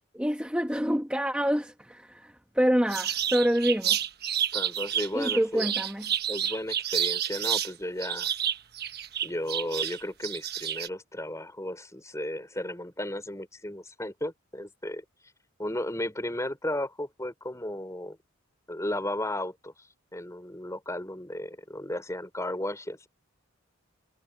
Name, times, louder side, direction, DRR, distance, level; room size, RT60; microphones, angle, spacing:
voice 1, 0.1-4.1 5.1-6.1, equal, 5° right, 1.5 m, -27 dB
sound 1, 2.9-7.7 8.0-10.9, right 9 dB, 50° right, 1.3 m, -29 dB
voice 2, 4.5-5.7 6.3-8.3 9.2-15.0 15.6-18.2 18.7-19.7 20.1-23.1, left 1 dB, 15° left, 5.0 m, -34 dB
head